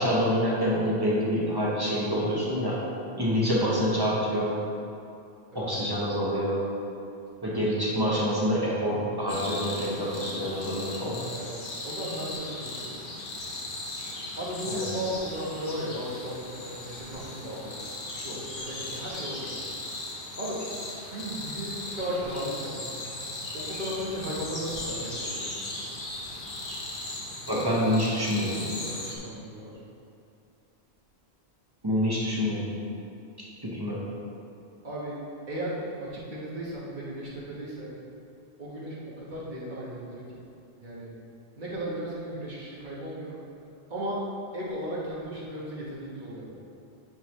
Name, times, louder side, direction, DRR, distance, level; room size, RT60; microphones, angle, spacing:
voice 1, 0.0-2.8 3.2-4.6 5.5-6.7 7.4-11.3 14.7-14.9 27.5-28.6 31.8-32.7 33.6-34.0, equal, 20° right, -6 dB, 1.0 m, -26 dB
sound 1, 9.3-29.2, left 2 dB, 50° left, 1.1 m, -38 dB
voice 2, 11.8-13.0 14.4-19.5 20.4-20.6 20.9-22.8 23.5-26.5 27.5-27.8 28.4-29.7 34.8-35.2 35.5-38.0 38.6-40.4 40.8-41.1 41.6-43.4 43.9-44.2 44.5-46.5, equal, 45° right, -6 dB, 1.2 m, -36 dB
8.7 x 3.9 x 3.1 m, 2.6 s
omnidirectional pair, 1.1 m